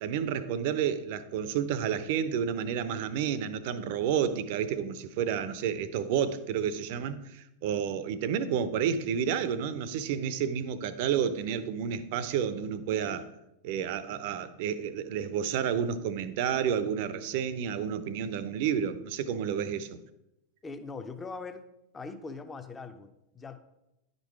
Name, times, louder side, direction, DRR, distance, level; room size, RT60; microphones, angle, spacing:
voice 1, 0.0-13.3 13.6-20.0, right 8 dB, 50° right, 0.6 m, -30 dB
voice 2, 20.6-21.6 21.9-23.6, left 4 dB, 15° left, 0.7 m, -41 dB
10.5 x 5.3 x 4.6 m
figure-of-eight pair, 90°, 0 cm